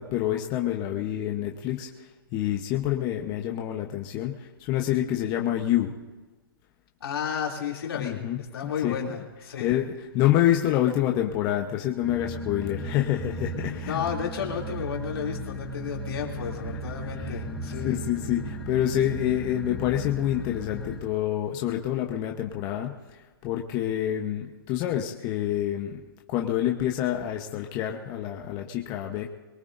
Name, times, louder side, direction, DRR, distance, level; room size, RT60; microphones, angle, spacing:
voice 1, 0.0-5.9 7.9-9.1 9.4-14.0 16.1-16.3 17.2-17.4 17.8-22.9 23.4-26.0 26.3-29.3, left 12 dB, 30° left, 2 dB, 1.0 m, -27 dB
voice 2, 7.0-9.7 13.9-18.0, left 7 dB, 80° left, -1 dB, 3.0 m, -32 dB
sound 1, 12.0-21.0, equal, 5° left, 3.2 m, -35 dB
23.0 x 19.5 x 2.7 m, 1.2 s
hypercardioid pair, 135°, 13 cm